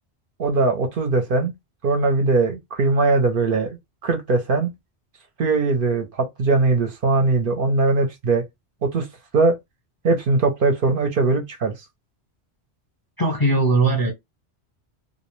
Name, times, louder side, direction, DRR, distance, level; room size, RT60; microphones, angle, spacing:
voice 1, 0.4-1.5 1.8-4.7 5.4-8.4 8.8-9.1 9.3-9.6 10.0-11.7, right 3 dB, 60° right, 0.7 m, -20 dB
voice 2, 13.2-14.1, right 2 dB, 25° left, 0.5 m, -19 dB
2.4 x 2.0 x 2.9 m
omnidirectional pair, 1.1 m